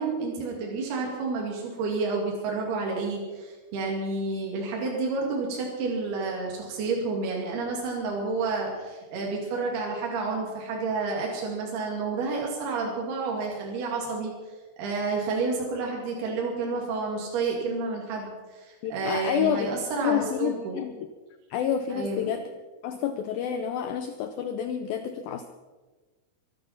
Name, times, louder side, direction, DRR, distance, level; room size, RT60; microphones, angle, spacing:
voice 1, 0.0-14.3 14.8-20.8 21.9-22.3, right 4 dB, 65° right, -2 dB, 4.3 m, -30 dB
voice 2, 18.8-21.0 21.5-22.5 22.8-25.5, left 9 dB, 90° left, 8 dB, 2.0 m, -29 dB
23.0 x 10.5 x 5.8 m, 1.3 s
omnidirectional pair, 5.2 m